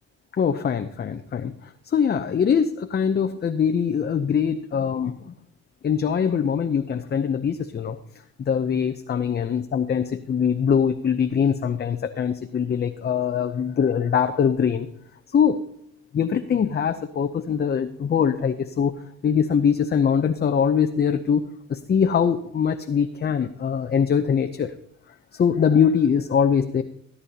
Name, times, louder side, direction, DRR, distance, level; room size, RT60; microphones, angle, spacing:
voice 1, 0.3-5.3 5.8-8.0 8.4-14.9 15.3-15.6 16.1-18.9 19.2-21.4 21.7-24.7 25.3-26.8, left 7 dB, 35° left, 7 dB, 0.6 m, -22 dB
16.5 x 9.6 x 2.8 m, 0.72 s
cardioid pair, 90°, 30 cm